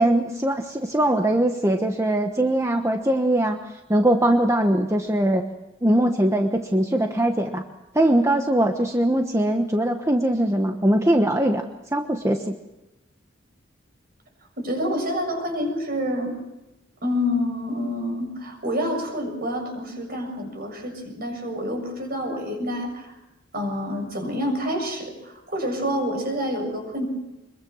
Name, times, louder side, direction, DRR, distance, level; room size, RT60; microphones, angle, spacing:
voice 1, 0.0-3.6 3.9-5.4 5.8-7.6 7.9-11.6 11.9-12.5, right 1 dB, 15° right, 4 dB, 1.1 m, -21 dB
voice 2, 14.6-16.4 17.0-23.1 23.5-27.0, equal, 50° right, 4 dB, 7.1 m, -28 dB
25.0 x 22.5 x 6.3 m, 1.0 s
head